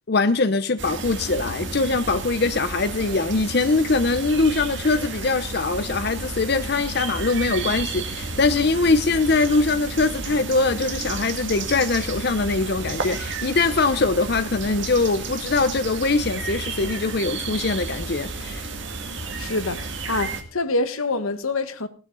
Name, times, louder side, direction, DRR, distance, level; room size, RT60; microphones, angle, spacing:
voice 1, 0.1-18.7, left 3 dB, 50° left, 0.7 m, -22 dB
sound 1, 0.8-20.4, right 3 dB, 60° right, 2.1 m, -32 dB
voice 2, 19.4-21.9, left 3 dB, 85° left, 1.4 m, -26 dB
17.0 x 12.0 x 3.9 m
head